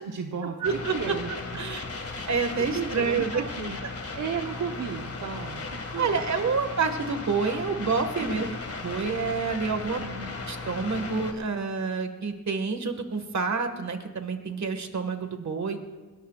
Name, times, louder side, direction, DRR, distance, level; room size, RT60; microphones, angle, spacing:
voice 1, 0.0-0.6 0.9-1.7 2.7-3.8 4.1-6.5 8.2-8.5 10.0-10.4, right 6 dB, 85° right, 2 dB, 1.1 m, -35 dB
sound 1, 0.6-11.3, left 3 dB, 45° left, 2.0 m, -36 dB
voice 2, 0.6-1.1 1.6-1.8 2.3-3.4 6.0-8.5 8.8-10.0 10.5-15.8, right 4 dB, 60° right, 7 dB, 1.8 m, -28 dB
21.0 x 18.5 x 2.5 m, 1.3 s
cardioid pair, 75°, 31 cm